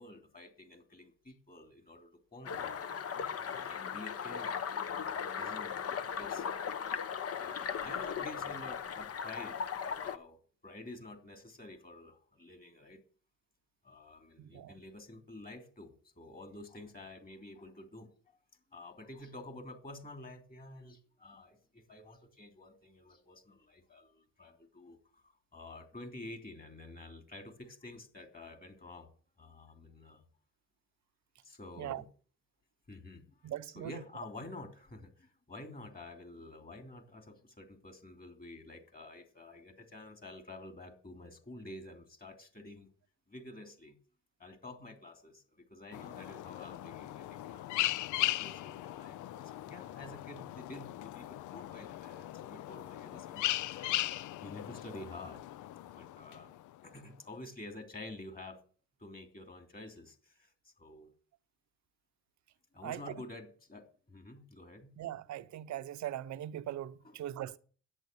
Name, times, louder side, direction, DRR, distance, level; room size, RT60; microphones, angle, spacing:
voice 1, 0.0-2.7 3.4-6.5 7.3-13.0 13.8-18.4 18.7-29.1 29.4-30.2 31.4-32.1 32.9-33.5 33.7-42.9 43.3-44.0 44.4-47.8 48.2-53.9 54.4-55.4 55.8-56.5 56.8-58.6 59.0-61.1 62.7-64.9 67.0-67.2, left 2 dB, 30° left, 3.2 m, -50 dB
sound 1, 2.4-10.2, left 7 dB, 50° left, 1.1 m, -37 dB
voice 2, 14.4-14.7 31.8-32.0 33.4-33.9 62.8-63.0 65.0-67.6, right 12 dB, 65° right, 0.8 m, -40 dB
sound 2, 45.9-56.9, left 15 dB, 80° left, 0.5 m, -38 dB
11.0 x 8.8 x 6.9 m
cardioid pair, 90°, 30 cm